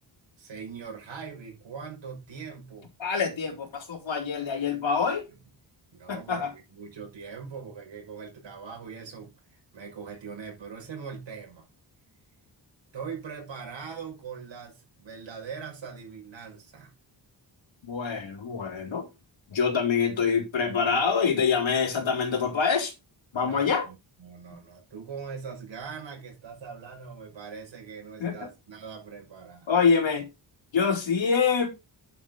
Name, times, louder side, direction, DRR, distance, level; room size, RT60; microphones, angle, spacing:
voice 1, 0.4-2.9 5.9-11.7 12.9-16.9 23.4-29.7, right 6 dB, 75° right, 6.0 m, -41 dB
voice 2, 3.0-5.2 6.1-6.5 17.8-19.1 19.5-22.9 23.3-23.9 28.2-28.3 29.7-30.3 30.7-31.7, left 5 dB, 80° left, 3.8 m, -25 dB
10.0 x 8.1 x 3.9 m
wide cardioid pair, 140°, 45 cm